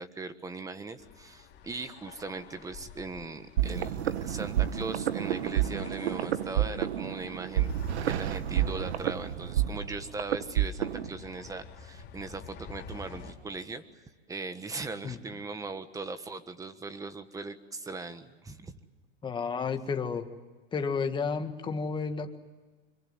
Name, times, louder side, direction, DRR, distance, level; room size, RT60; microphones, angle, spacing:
voice 1, 0.0-7.7 8.0-13.8 14.3-18.8, right 3 dB, 10° right, 11 dB, 1.4 m, -39 dB
sound 1, 1.0-13.3, left 6 dB, 30° left, 3.8 m, -50 dB
sound 2, 3.6-11.1, right 11 dB, 80° right, 1.6 m, -30 dB
voice 2, 19.2-20.3 20.7-22.4, left 5 dB, 15° left, 6 dB, 1.8 m, -31 dB
26.0 x 23.5 x 9.6 m, 1.3 s
supercardioid pair, 145°, 33 cm